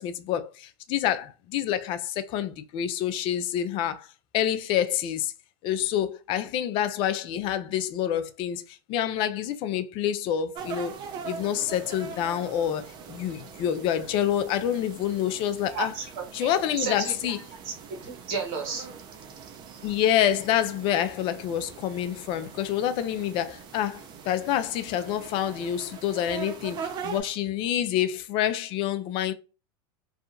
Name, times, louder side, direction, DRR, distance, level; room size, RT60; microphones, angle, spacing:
voice 1, 0.0-4.1 4.3-5.3 5.6-11.0 11.2-15.9 16.3-17.4 19.8-29.3, left 10 dB, 40° left, 0.4 m, -27 dB
sound 1, 10.5-27.2, right 6 dB, 35° right, 0.6 m, -42 dB
voice 2, 15.7-17.7 18.3-18.9, right 4 dB, 60° right, 1.2 m, -33 dB
2.7 x 2.4 x 2.4 m
supercardioid pair, 125°, 13 cm